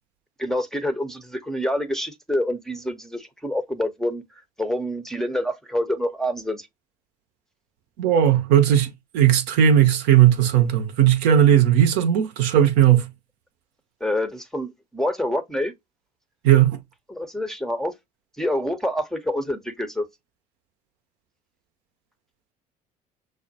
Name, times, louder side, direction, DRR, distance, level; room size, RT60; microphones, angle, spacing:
voice 1, 0.4-4.2 4.6-6.7 14.0-15.7 17.1-17.9 18.4-20.1, left 1 dB, ahead, 0.7 m, -27 dB
voice 2, 8.0-13.1 16.4-16.8, right 10 dB, 60° right, 0.7 m, -17 dB
6.2 x 2.1 x 2.7 m
figure-of-eight pair, 55°, 20 cm